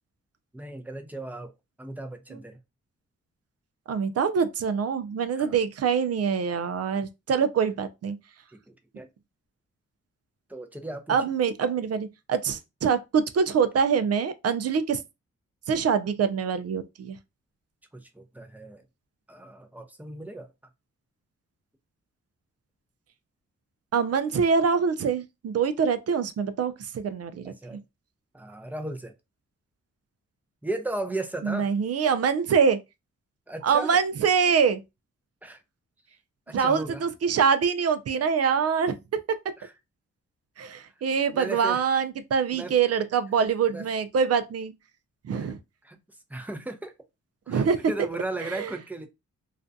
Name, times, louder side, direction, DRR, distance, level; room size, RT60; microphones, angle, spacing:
voice 1, 0.5-1.5 1.8-2.6 5.4-5.6 8.5-9.1 10.5-11.2 17.9-18.8 19.3-20.5 27.4-27.8 28.3-29.1 30.6-31.7 33.5-34.0 35.4-35.6 36.5-37.0 39.6-39.7 41.3-41.8 42.5-42.8 43.7-43.9 45.3-45.5 45.8-46.0 46.3-46.9 47.5-49.1, right 2 dB, 5° right, 0.6 m, -36 dB
voice 2, 3.9-8.2 11.1-15.0 15.7-17.2 23.9-27.5 31.4-32.8 33.6-34.8 36.5-39.4 40.6-44.7 45.2-45.6 47.5-47.9 48.5-48.7, right 6 dB, 55° right, 0.5 m, -24 dB
2.4 x 2.1 x 2.6 m
cardioid pair, 65°, 29 cm